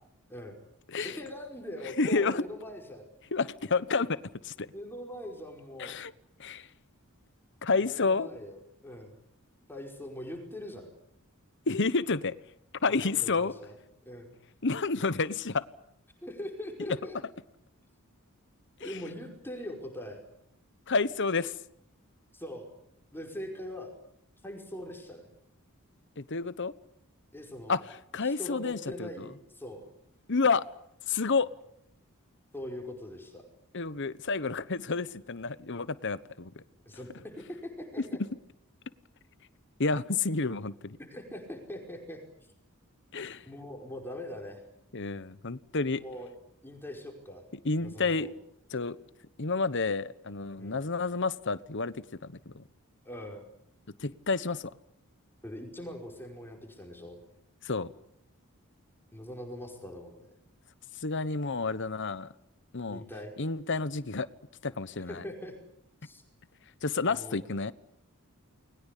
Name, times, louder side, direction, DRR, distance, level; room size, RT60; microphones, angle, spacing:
voice 1, 1.0-3.1 4.7-5.9 7.7-9.1 9.7-10.9 12.8-13.8 14.0-14.3 16.2-17.2 18.8-20.2 22.3-22.7 23.1-23.9 24.4-25.3 27.3-27.8 28.2-29.8 32.5-33.4 36.8-38.2 41.1-42.2 43.4-44.6 46.0-46.3 46.6-47.4 47.8-48.3 50.6-50.8 53.0-53.5 55.4-57.2 59.1-60.3 62.9-63.3 65.0-65.5 66.0-66.2 67.1-67.4, left 1 dB, 10° left, 5.0 m, -42 dB
voice 2, 1.9-2.4 3.3-4.1 4.4-4.7 5.8-6.1 6.4-6.7 7.6-8.3 11.7-12.3 12.8-13.6 14.6-15.6 18.8-18.9 20.9-21.5 26.2-26.7 27.7-27.8 28.1-29.3 30.3-30.6 31.1-31.5 33.7-36.6 39.8-41.0 43.1-43.4 44.9-46.0 47.6-48.3 48.7-49.0 49.4-52.6 54.0-54.7 57.6-57.9 61.0-62.3 62.7-63.0 63.4-64.3 64.6-65.2 66.8-67.7, left 4 dB, 55° left, 1.2 m, -30 dB
29.5 x 21.5 x 8.4 m
head